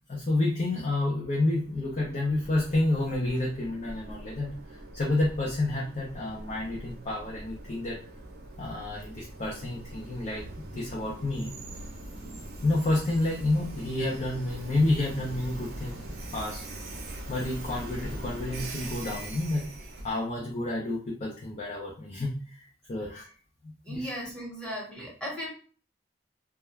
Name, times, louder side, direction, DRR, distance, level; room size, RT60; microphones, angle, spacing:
voice 1, 0.1-8.0 8.6-10.4 10.7-11.5 12.6-16.0 16.3-16.6 17.3-19.6 20.0-23.3 23.9-24.1, left 2 dB, 40° left, -4 dB, 0.5 m, -29 dB
Train, 1.5-20.3, right 1 dB, 60° right, 0.6 m, -42 dB
voice 2, 23.8-25.5, equal, 5° left, -4 dB, 1.0 m, -36 dB
2.3 x 2.1 x 3.1 m, 0.41 s
head